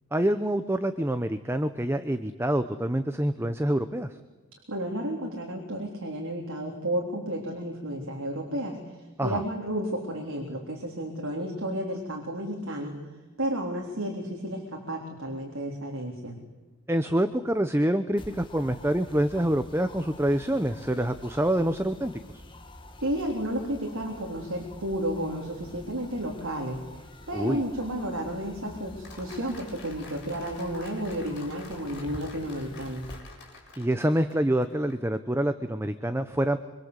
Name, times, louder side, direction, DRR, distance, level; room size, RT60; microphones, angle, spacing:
voice 1, 0.1-4.1 9.2-9.4 16.9-22.1 27.3-27.6 33.8-36.6, right 1 dB, 10° right, 9 dB, 0.8 m, -26 dB
voice 2, 4.7-13.0 13.4-16.4 23.0-33.1, right 1 dB, 70° right, 0 dB, 3.9 m, -32 dB
sound 1, 18.2-33.2, left 1 dB, 20° left, 1.8 m, -47 dB
Applause, 29.0-35.0, left 3 dB, 50° left, 7.7 m, -48 dB
25.5 x 25.0 x 8.2 m, 1.2 s
head